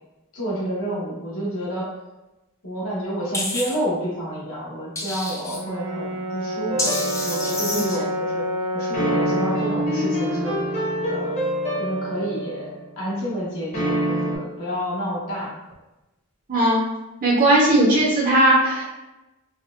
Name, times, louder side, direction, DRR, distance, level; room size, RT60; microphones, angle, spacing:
voice 1, 0.3-1.9 2.6-8.5 8.7-10.6 11.1-11.4 11.8-15.5, equal, 70° left, -7 dB, 1.0 m, -29 dB
sound 1, 3.3-3.7 4.9-5.6 6.8-8.0, left 2 dB, 15° left, 0.3 m, -28 dB
Brass instrument, 5.4-9.7, equal, 85° right, 0.4 m, -28 dB
sound 2, 6.7-8.1 8.9-12.9 13.7-14.4, equal, 30° left, 0.8 m, -26 dB
voice 2, 16.5-16.8 17.2-18.8, right 1 dB, 40° right, -4 dB, 0.5 m, -17 dB
4.2 x 2.1 x 2.3 m, 1.0 s
head